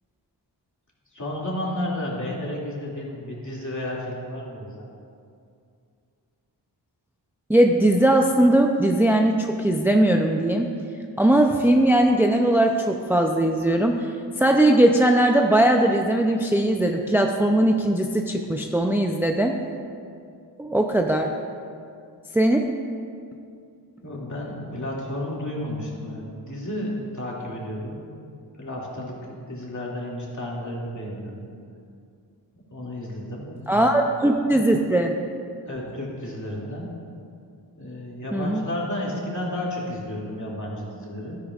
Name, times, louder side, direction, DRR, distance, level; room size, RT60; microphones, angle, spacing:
voice 1, 1.1-4.9 24.0-28.1 28.5-31.5 32.5-33.9 35.7-36.9 37.8-41.4, left 1 dB, 40° left, -4 dB, 2.4 m, -32 dB
voice 2, 7.5-10.7 11.2-14.1 14.4-19.6 20.6-21.3 22.3-22.7 33.7-35.1 38.3-38.6, right 1 dB, 5° right, 3 dB, 0.5 m, -19 dB
12.5 x 10.0 x 2.5 m, 2.4 s
cardioid pair, 55°, 44 cm